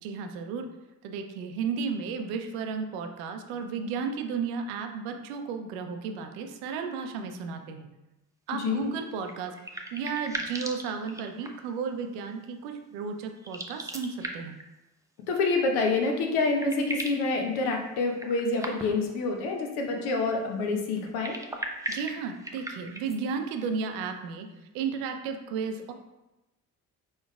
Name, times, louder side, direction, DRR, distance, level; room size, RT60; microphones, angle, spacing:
voice 1, 0.0-0.7 1.0-7.9 8.5-9.5 9.9-14.6 21.9-24.5 24.7-25.9, right 5 dB, 70° right, 6 dB, 0.6 m, -33 dB
voice 2, 8.5-8.8 15.3-21.4, left 3 dB, 65° left, 2 dB, 0.9 m, -27 dB
sound 1, 9.2-11.8 13.4-14.7 16.0-16.1 16.3-17.3 18.1-19.1 21.0-23.2, right 1 dB, 10° right, 0.6 m, -38 dB
4.6 x 4.3 x 2.3 m, 0.99 s
figure-of-eight pair, 45°, 42 cm